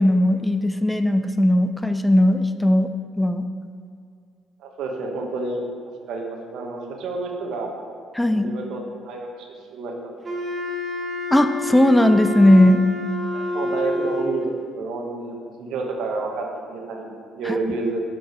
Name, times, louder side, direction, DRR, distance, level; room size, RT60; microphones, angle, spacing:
voice 1, 0.0-3.5 8.1-8.5 11.3-12.9 17.5-17.6, left 1 dB, 10° left, 9 dB, 0.3 m, -18 dB
voice 2, 4.6-5.6 6.1-7.7 8.3-10.1 13.3-14.5 14.7-18.0, right 3 dB, 70° right, 1 dB, 1.0 m, -29 dB
Wind instrument woodwind instrument, 10.2-14.5, left 2 dB, 35° right, 1.1 m, -28 dB
6.5 x 4.6 x 4.8 m, 2.3 s
supercardioid pair, 75°, 0 cm